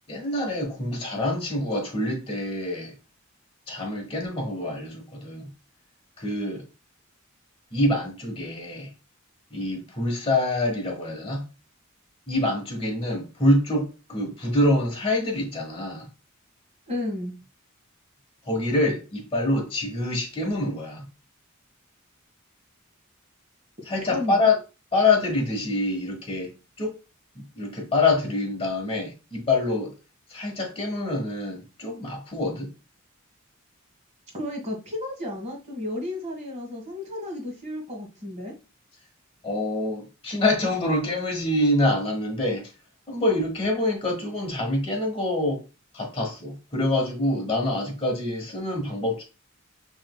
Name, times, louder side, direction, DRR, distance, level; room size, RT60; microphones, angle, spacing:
voice 1, 0.1-2.9 3.7-5.5 6.2-6.6 7.7-8.9 9.5-11.5 12.3-16.1 18.5-21.1 23.8-24.6 24.9-27.0 27.3-29.9 30.3-32.7 39.4-42.7 43.1-45.6 45.9-49.2, left 2 dB, 30° left, 1.4 m, -26 dB
voice 2, 16.9-17.4 24.1-24.4 34.3-38.5, left 1 dB, 35° right, 1.6 m, -33 dB
5.2 x 3.2 x 2.2 m
head